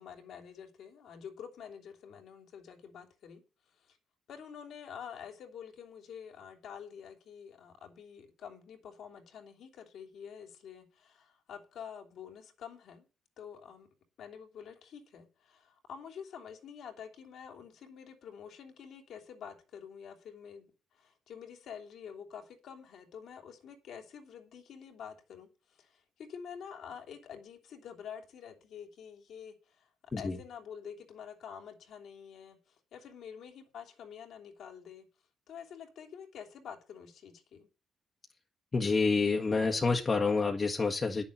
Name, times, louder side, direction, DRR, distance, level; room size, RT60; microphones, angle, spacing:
voice 1, 0.0-3.4 3.8-4.0 4.3-13.0 13.4-13.9 14.2-20.7 20.9-29.9 30.2-35.1 35.5-37.7, left 7 dB, 75° left, 3.1 m, -48 dB
voice 2, 38.7-41.2, left 4 dB, 35° left, 1.5 m, -28 dB
9.8 x 7.0 x 7.4 m
cardioid pair, 90°, 0 cm